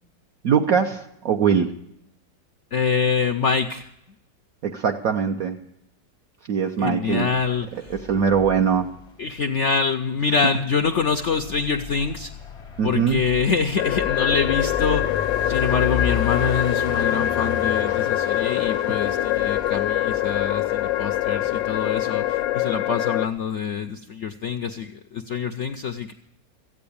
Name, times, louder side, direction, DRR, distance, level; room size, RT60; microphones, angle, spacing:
voice 1, 0.4-1.7 4.6-5.6 6.5-7.3 7.9-8.9 12.8-13.2, right 7 dB, 60° right, 4 dB, 1.0 m, -21 dB
voice 2, 2.7-3.9 6.8-8.0 9.2-12.3 12.8-15.2 15.5-26.1, left 5 dB, 65° left, 8 dB, 0.7 m, -25 dB
sound 1, 7.1-9.3 11.0-22.7, left 6 dB, 30° left, 0.6 m, -35 dB
sound 2, 13.8-23.3, left 13 dB, 85° left, 1.4 m, -24 dB
15.0 x 8.7 x 8.5 m, 0.81 s
omnidirectional pair, 2.0 m